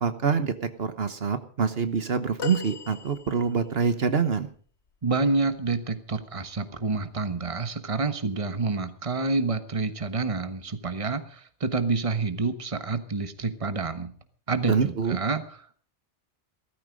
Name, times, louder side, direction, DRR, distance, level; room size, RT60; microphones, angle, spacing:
voice 1, 0.0-4.5 14.7-15.2, right 6 dB, 65° right, 10 dB, 1.3 m, -26 dB
sound 1, 2.4-3.8 6.2-6.4 7.7-7.8, left 7 dB, 90° left, 1.6 m, -38 dB
voice 2, 5.0-14.1 14.5-15.7, right 3 dB, 30° right, 10 dB, 1.3 m, -28 dB
16.5 x 14.0 x 5.2 m, 0.44 s
omnidirectional pair, 1.1 m